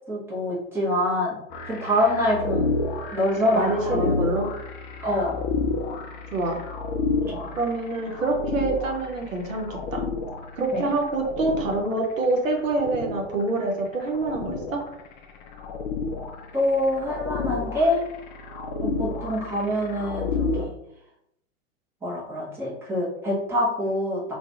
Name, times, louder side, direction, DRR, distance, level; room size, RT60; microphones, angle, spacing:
voice 1, 0.1-1.4 1.6-2.7 3.1-4.1 5.0-5.4 7.3-7.5 10.7-10.9 16.5-18.0 18.8-20.7 22.0-24.4, left 1 dB, 5° right, -5 dB, 0.6 m, -25 dB
sound 1, 1.5-20.7, left 3 dB, 40° left, 0.4 m, -31 dB
voice 2, 3.5-4.5 6.3-6.6 7.6-10.0 10.6-14.8, right 2 dB, 75° right, 1 dB, 0.7 m, -26 dB
2.3 x 2.2 x 2.7 m, 0.75 s
figure-of-eight pair, 95°, 39 cm